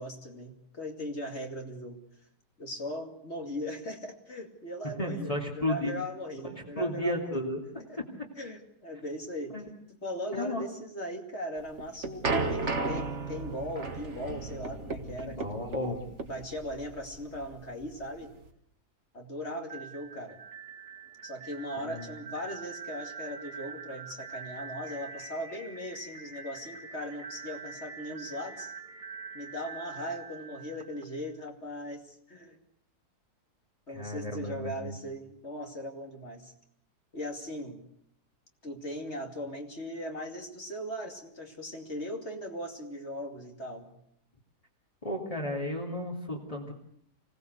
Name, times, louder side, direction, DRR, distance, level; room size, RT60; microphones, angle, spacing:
voice 1, 0.0-2.0 2.6-7.5 7.9-8.0 8.4-9.6 10.0-16.0 16.2-18.3 19.1-20.4 21.2-28.7 29.3-32.6 33.9-36.5 37.1-37.8 38.6-43.9, equal, 40° left, 3 dB, 2.8 m, -39 dB
voice 2, 5.0-5.9 6.8-7.6 9.5-9.7 10.3-10.6 15.2-16.0 21.8-22.1 33.9-34.9 45.0-46.7, left 1 dB, 20° left, -4 dB, 2.8 m, -33 dB
sound 1, 11.6-18.5, right 3 dB, 45° right, 2.0 m, -34 dB
sound 2, 19.6-31.5, right 6 dB, 75° right, 3.4 m, -45 dB
25.0 x 18.0 x 8.0 m, 0.69 s
omnidirectional pair, 1.7 m